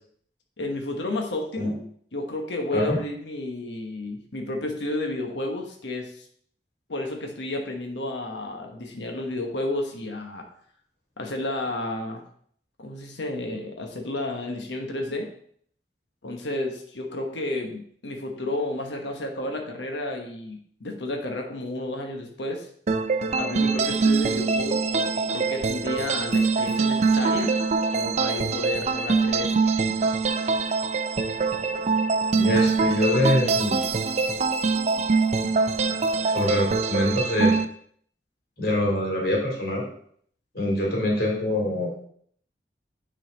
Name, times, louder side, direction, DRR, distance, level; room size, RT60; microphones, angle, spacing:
voice 1, 0.6-1.8 2.1-6.3 6.9-10.5 11.2-12.2 12.8-15.3 16.2-22.7 23.3-27.6 27.9-29.6, left 2 dB, 85° left, 2 dB, 1.1 m, -31 dB
sound 1, 22.9-37.6, right 4 dB, 40° right, 0.4 m, -24 dB
voice 2, 32.4-33.8 36.3-37.5 38.6-39.9 40.5-41.9, left 1 dB, 60° left, -1 dB, 2.5 m, -24 dB
9.3 x 4.1 x 3.9 m, 0.62 s
head